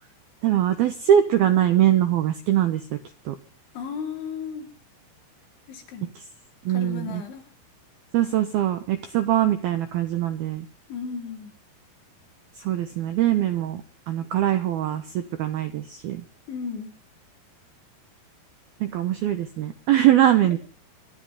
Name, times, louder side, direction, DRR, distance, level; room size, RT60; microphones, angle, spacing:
voice 1, 0.4-3.0 3.3-3.4 6.7-7.2 8.1-10.7 12.6-13.8 14.1-16.2 18.8-20.6, right 11 dB, 75° right, 10 dB, 2.3 m, -22 dB
voice 2, 3.7-4.7 5.7-6.1 6.7-7.4 10.9-11.5 16.5-16.9, left 6 dB, 65° left, 1 dB, 6.5 m, -34 dB
28.0 x 12.5 x 3.7 m, 0.38 s
omnidirectional pair, 5.9 m